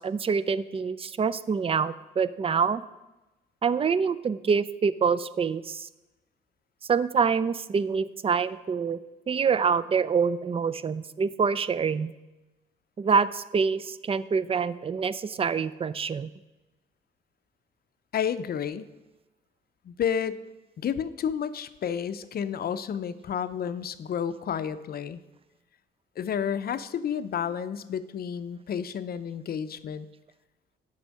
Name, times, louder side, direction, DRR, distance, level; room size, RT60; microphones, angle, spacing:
voice 1, 0.0-2.8 3.6-5.9 6.9-9.0 9.3-12.1 13.0-16.3, right 6 dB, 30° right, 16 dB, 0.4 m, -26 dB
voice 2, 18.1-18.9 19.8-20.4 20.8-25.2 26.2-30.1, left 8 dB, 50° left, 12 dB, 0.6 m, -31 dB
7.9 x 5.6 x 6.3 m, 1.1 s
cardioid pair, 90°, 20 cm